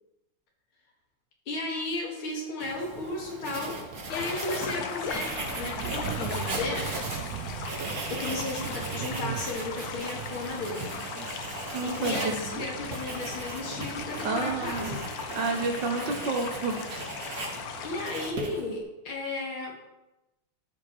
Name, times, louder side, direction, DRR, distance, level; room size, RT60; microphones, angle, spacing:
voice 1, 1.5-3.8 4.1-7.2 8.1-10.9 11.8-15.1 17.8-19.7, left 2 dB, 85° left, -1 dB, 2.7 m, -34 dB
Writing, 2.6-18.8, right 2 dB, 45° right, 1.8 m, -38 dB
sound 1, 4.1-18.3, left 7 dB, 65° left, 1.0 m, -38 dB
sound 2, 5.1-14.8, right 11 dB, 80° right, 0.8 m, -40 dB
voice 2, 11.7-12.3 14.2-15.0 15.3-17.0 17.4-17.7, right 3 dB, 60° right, 3 dB, 1.7 m, -30 dB
13.0 x 5.2 x 4.5 m, 0.97 s
omnidirectional pair, 2.3 m